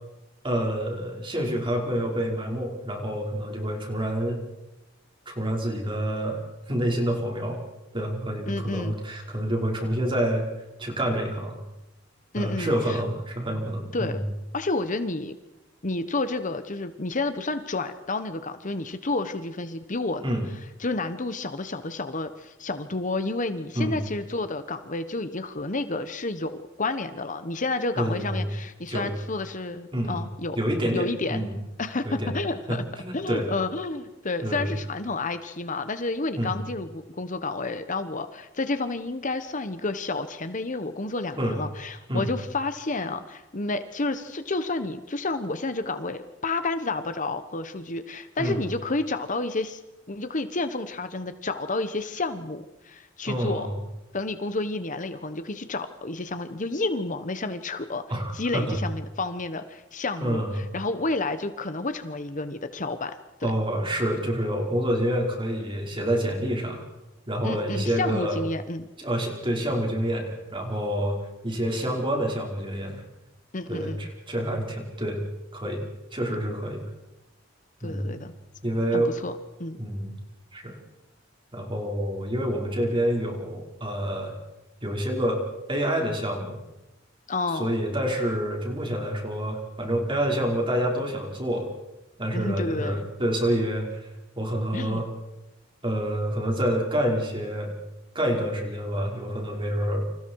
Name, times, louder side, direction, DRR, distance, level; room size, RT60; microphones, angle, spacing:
voice 1, 0.4-4.4 5.3-6.4 6.7-7.6 7.9-10.5 10.8-11.6 12.3-14.2 20.2-20.4 23.7-24.0 28.0-28.5 28.9-29.1 29.9-30.2 30.5-31.5 32.0-32.4 32.7-33.5 34.4-34.7 36.4-36.6 41.4-41.6 42.1-42.3 48.4-48.6 53.3-53.7 58.1-58.8 60.2-60.6 63.4-66.8 67.3-68.4 69.0-71.2 71.4-73.0 73.7-75.2 75.5-75.8 76.1-76.8 77.8-78.1 78.6-79.1 79.8-80.1 80.5-80.8 81.5-84.3 84.8-85.4 85.7-86.6 87.5-91.7 92.2-94.1 94.4-95.1 95.8-97.7 98.1-100.1, equal, 25° right, 1 dB, 5.3 m, -27 dB
voice 2, 8.5-8.9 12.3-13.0 13.9-14.2 14.5-15.4 15.8-20.2 20.8-30.6 30.9-31.5 31.8-32.8 33.1-49.8 50.1-53.7 54.1-58.0 58.3-63.1 63.4-63.5 67.4-68.9 73.5-74.1 77.8-78.3 78.9-79.8 87.3-87.7 92.3-93.1 94.7-95.0, left 2 dB, 40° left, 10 dB, 1.2 m, -30 dB
29.5 x 27.0 x 4.8 m, 0.96 s
head